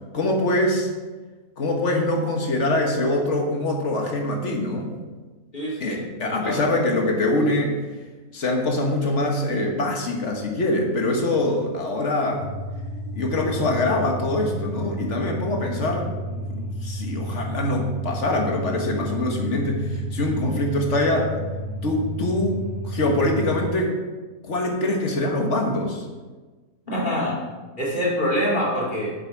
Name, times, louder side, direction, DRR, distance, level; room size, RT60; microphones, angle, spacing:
voice 1, 0.1-0.9 1.6-4.9 5.8-7.7 8.3-12.4 13.1-16.1 16.4-16.5 16.8-21.4 21.8-23.9 24.4-26.0, left 1 dB, 55° left, 1 dB, 1.6 m, -24 dB
voice 2, 5.5-6.8 26.9-27.4 27.8-29.1, equal, 35° left, -6 dB, 2.5 m, -25 dB
sound 1, 12.3-23.7, equal, 85° right, 3.2 m, -32 dB
8.1 x 6.8 x 4.7 m, 1.3 s
omnidirectional pair, 1.6 m